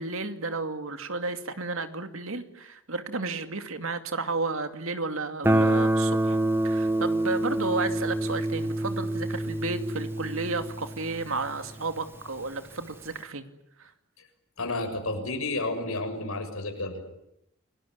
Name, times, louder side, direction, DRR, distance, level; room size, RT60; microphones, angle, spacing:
voice 1, 0.0-6.4 6.6-13.5 13.8-13.9, right 3 dB, 75° right, 8 dB, 2.4 m, -32 dB
Guitar, 5.4-12.2, right 1 dB, 10° right, 1.4 m, -27 dB
voice 2, 14.6-17.0, left 2 dB, 90° left, 5 dB, 6.9 m, -31 dB
29.0 x 20.0 x 9.8 m, 0.80 s
head